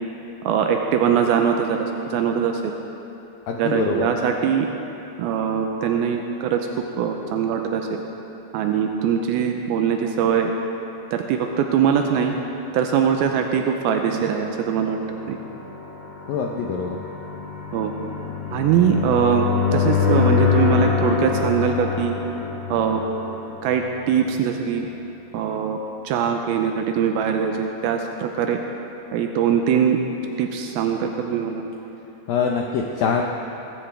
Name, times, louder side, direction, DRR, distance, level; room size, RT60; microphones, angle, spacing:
voice 1, 0.4-2.8 3.6-4.7 5.2-6.6 7.0-8.0 8.5-10.5 11.1-12.4 12.7-15.0 15.3-15.4 17.7-17.9 18.5-22.1 22.7-23.0 23.6-24.9 25.3-25.8 26.0-28.6 29.1-30.0 30.4-31.6, right 7 dB, 85° right, 3 dB, 2.2 m, -22 dB
voice 2, 3.5-4.1 16.3-17.0 32.3-33.2, left 6 dB, 85° left, 1 dB, 2.0 m, -24 dB
sound 1, 13.4-24.2, left 7 dB, 50° left, 3.1 m, -25 dB
21.5 x 15.5 x 3.4 m, 3.0 s
omnidirectional pair, 5.1 m